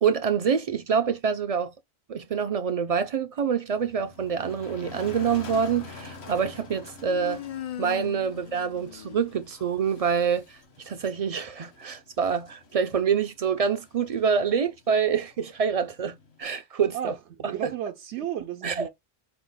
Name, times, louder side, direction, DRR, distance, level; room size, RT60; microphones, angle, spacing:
voice 1, 0.0-1.7 2.1-7.4 7.8-17.1 17.4-17.5 18.6-18.9, right 7 dB, 55° right, 0.4 m, -26 dB
Motor vehicle (road), 3.8-16.4, left 3 dB, 70° left, 1.3 m, -47 dB
Human voice, 4.9-5.9 7.0-9.8, left 10 dB, 55° left, 0.4 m, -40 dB
voice 2, 16.9-18.9, right 11 dB, 85° right, 0.9 m, -34 dB
4.7 x 2.1 x 3.8 m
omnidirectional pair, 1.1 m